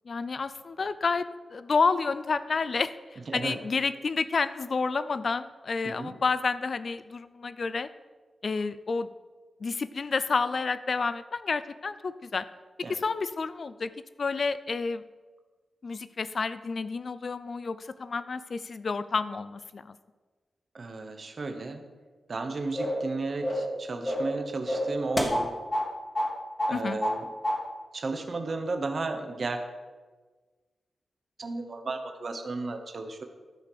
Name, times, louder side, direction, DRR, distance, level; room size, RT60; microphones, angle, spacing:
voice 1, 0.1-7.9 8.4-9.1 9.6-12.4 12.9-13.9 14.2-15.0 15.8-20.0 26.7-27.0, left 4 dB, 45° left, 14 dB, 0.4 m, -30 dB
voice 2, 3.3-3.6 5.8-6.1 12.8-13.0 20.7-21.9 22.3-25.6 26.7-27.3 27.9-29.6 31.4-33.2, right 3 dB, 40° right, 6 dB, 0.9 m, -34 dB
sound 1, 22.8-23.1 23.4-23.7 24.0-24.4 24.7-25.9 26.1-26.3 26.6-27.2 27.4-27.6, equal, 15° left, 1.2 m, -28 dB
12.0 x 4.9 x 6.7 m, 1.3 s
wide cardioid pair, 180°, 0 cm